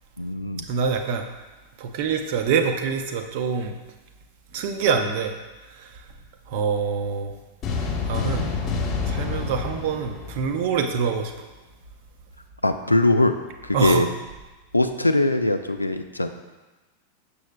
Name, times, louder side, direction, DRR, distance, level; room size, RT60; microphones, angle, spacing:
voice 1, 0.2-0.7 12.6-13.3 13.6-14.1 14.7-16.3, left 2 dB, 85° left, 8 dB, 0.3 m, -21 dB
voice 2, 0.7-1.3 1.8-3.7 4.5-5.3 5.7-6.0 6.5-7.3 8.1-8.6 9.0-11.5 13.7-14.1, right 6 dB, 50° right, 6 dB, 0.5 m, -25 dB
sound 1, 7.6-11.1, left 4 dB, 35° left, 0.9 m, -28 dB
6.8 x 6.3 x 2.2 m, 1.2 s
figure-of-eight pair, 90°, 0 cm